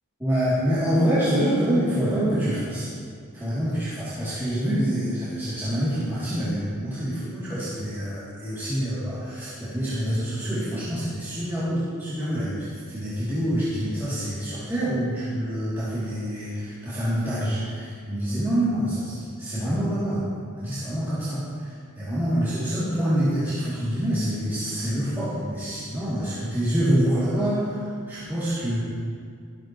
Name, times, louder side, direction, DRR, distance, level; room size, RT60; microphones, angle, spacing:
voice 1, 0.2-2.9 3.3-19.0 19.4-20.2 20.5-28.8, equal, 10° right, -13 dB, 2.9 m, -26 dB
14.0 x 13.0 x 3.1 m, 2.2 s
head